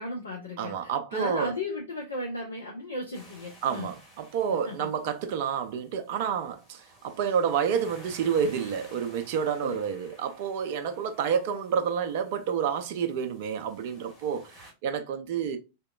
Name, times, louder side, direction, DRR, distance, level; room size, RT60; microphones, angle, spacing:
voice 1, 0.0-3.9 4.5-4.9 9.6-9.8, left 1 dB, 75° left, 0.5 m, -35 dB
voice 2, 0.6-1.5 3.6-15.6, right 7 dB, 50° right, 0.4 m, -29 dB
sound 1, 3.1-14.7, equal, 20° left, 1.5 m, -54 dB
2.8 x 2.1 x 2.2 m
figure-of-eight pair, 90°, 0 cm